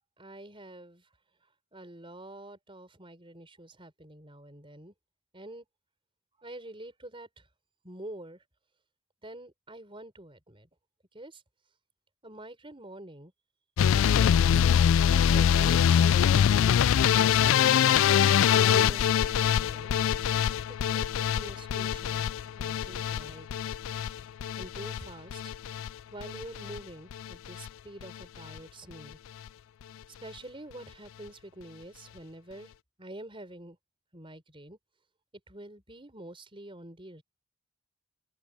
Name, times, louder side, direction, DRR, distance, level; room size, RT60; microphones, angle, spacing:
voice 1, 0.2-1.0 1.7-4.9 5.3-5.6 6.4-7.4 7.8-8.4 9.2-10.7 11.1-11.4 12.2-13.3 14.1-14.7 15.1-16.8 17.1-18.0 18.5-19.9 20.9-23.5 24.0-24.2 24.6-25.5 26.1-29.2 30.2-32.7 33.0-33.8 34.1-34.8 35.5-37.2, right 1 dB, 25° right, 4.8 m, -46 dB
sound 1, 13.8-25.9 26.2-26.8 27.1-27.7 28.0-28.2 28.6-28.7 28.9-29.0, left 9 dB, 70° left, 0.3 m, -24 dB
open air
head